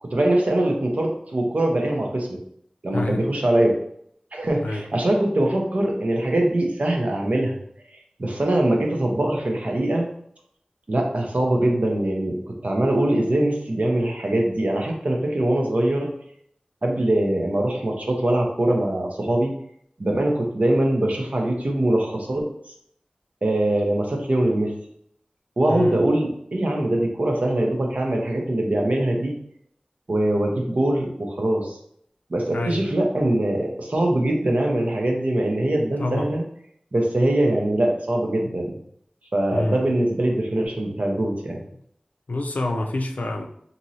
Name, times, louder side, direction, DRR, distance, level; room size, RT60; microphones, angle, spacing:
voice 1, 0.0-2.4 2.8-3.8 4.3-7.5 8.2-10.1 10.9-16.1 16.8-19.5 20.0-22.5 23.4-24.7 25.6-29.3 30.1-31.7 32.3-36.4 36.9-38.7 39.3-41.6, right 1 dB, 65° right, 1 dB, 0.7 m, -22 dB
voice 2, 42.3-43.5, left 2 dB, 85° left, 3 dB, 0.4 m, -26 dB
3.0 x 2.7 x 2.6 m, 0.69 s
wide cardioid pair, 45°, 3 cm